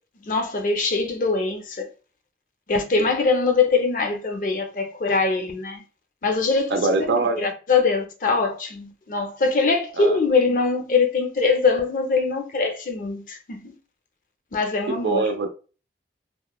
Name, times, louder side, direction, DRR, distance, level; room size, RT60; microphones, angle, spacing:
voice 1, 0.2-1.9 2.7-5.8 6.2-13.7 14.5-15.3, left 4 dB, 50° left, 0.4 m, -23 dB
voice 2, 6.7-7.4 10.0-10.2 14.9-15.5, right 3 dB, 80° right, 0.5 m, -23 dB
2.9 x 2.0 x 2.2 m
head